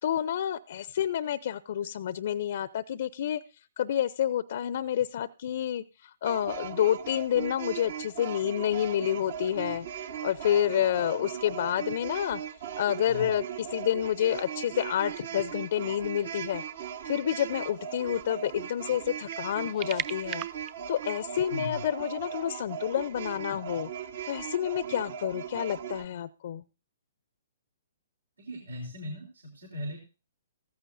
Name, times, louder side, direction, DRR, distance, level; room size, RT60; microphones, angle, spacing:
voice 1, 0.0-3.4 3.8-9.9 10.2-12.4 12.8-20.5 20.9-23.9 24.3-26.6, left 10 dB, 55° left, 17 dB, 0.5 m, -29 dB
sound 1, 6.2-26.1, right 9 dB, 55° right, 1.1 m, -38 dB
sound 2, 18.0-18.1 18.9-21.4, right 11 dB, 35° right, 0.8 m, -38 dB
voice 2, 28.4-30.0, equal, 80° right, 0 dB, 3.6 m, -38 dB
16.0 x 14.5 x 2.6 m, 0.32 s
hypercardioid pair, 125°, 0 cm